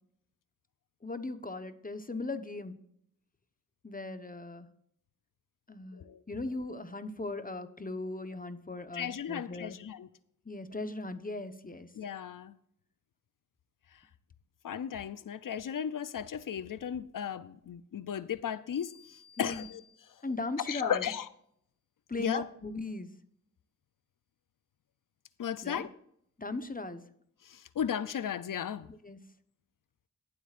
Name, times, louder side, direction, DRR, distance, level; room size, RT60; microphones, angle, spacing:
voice 1, 1.0-2.8 3.8-4.7 5.7-9.8 10.4-11.9 19.4-19.7 20.2-21.1 22.1-23.1 25.6-25.9 26.4-27.0 28.9-29.2, left 2 dB, 25° left, 1.0 m, -38 dB
voice 2, 8.9-10.1 12.0-12.5 14.6-19.0 19.4-19.8 20.7-21.3 22.2-22.4 25.4-25.9 27.4-28.9, left 8 dB, 85° left, 0.5 m, -35 dB
sound 1, 18.7-20.5, left 7 dB, 50° left, 1.2 m, -56 dB
22.0 x 7.9 x 2.5 m
cardioid pair, 45°, 31 cm